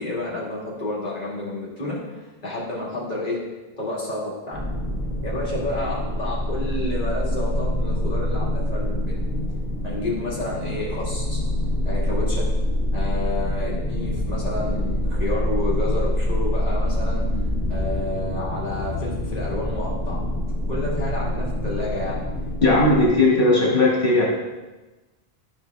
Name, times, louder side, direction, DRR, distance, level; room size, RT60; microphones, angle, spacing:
voice 1, 0.0-3.4 3.8-4.6 5.2-9.1 9.8-11.4 11.8-12.5 12.9-17.2 17.7-20.2 20.7-22.2, left 2 dB, 40° left, -6 dB, 2.4 m, -30 dB
sound 1, 4.5-23.0, left 1 dB, 15° right, 1.9 m, -25 dB
voice 2, 22.6-24.2, left 2 dB, 60° left, -6 dB, 2.6 m, -17 dB
12.5 x 5.8 x 3.5 m, 1.1 s
omnidirectional pair, 1.0 m